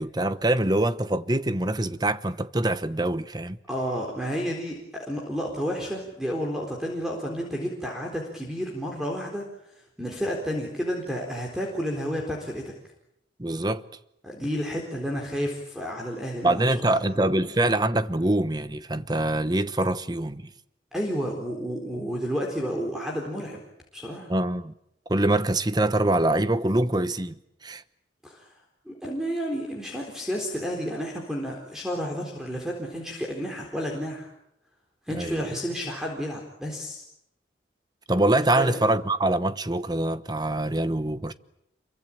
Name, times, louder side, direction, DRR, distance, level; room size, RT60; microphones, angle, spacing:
voice 1, 0.0-3.6 13.4-13.8 16.4-20.5 24.3-24.7 25.1-27.8 35.1-35.5 38.1-41.3, right 1 dB, 20° right, 1.0 m, -24 dB
voice 2, 3.7-9.5 10.0-12.7 14.2-17.0 17.3-17.4 20.9-23.6 23.9-24.3 28.2-28.5 28.9-34.3 35.1-37.0 38.5-38.8, equal, 5° right, 4.0 m, -31 dB
28.0 x 23.0 x 8.7 m
head